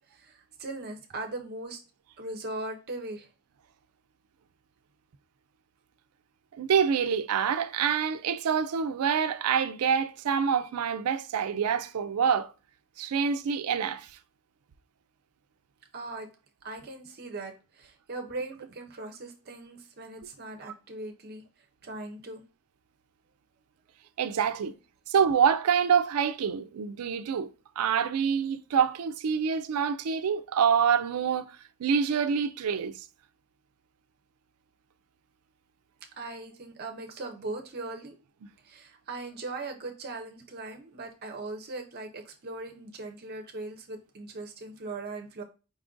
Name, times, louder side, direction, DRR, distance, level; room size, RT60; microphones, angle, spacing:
voice 1, 0.1-1.8 2.2-3.3 15.9-16.3 16.6-21.4 21.8-22.4 36.2-38.1 38.6-45.4, right 2 dB, 45° right, 0.6 m, -39 dB
voice 2, 6.5-12.5 13.0-14.1 24.2-24.7 25.1-27.5 27.8-31.5 31.8-33.0, right 7 dB, 85° right, 0.4 m, -26 dB
5.2 x 2.5 x 3.6 m
head